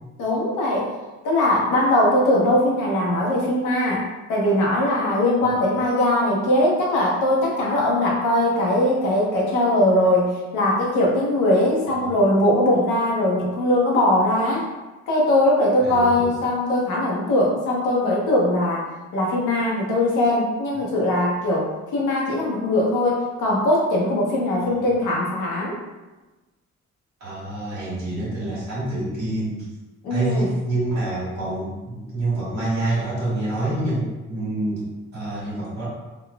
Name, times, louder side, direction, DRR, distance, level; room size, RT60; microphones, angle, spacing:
voice 1, 0.2-0.9 1.2-4.0 4.3-14.6 15.1-18.9 19.1-21.7 21.9-25.7 30.0-30.5, left 1 dB, 85° left, -3 dB, 0.9 m, -20 dB
voice 2, 15.8-16.4 24.6-24.8 27.2-29.6 30.1-34.9 35.1-35.9, right 2 dB, 60° right, -7 dB, 1.4 m, -27 dB
3.9 x 2.3 x 2.2 m, 1.1 s
cardioid pair, 90°, 30 cm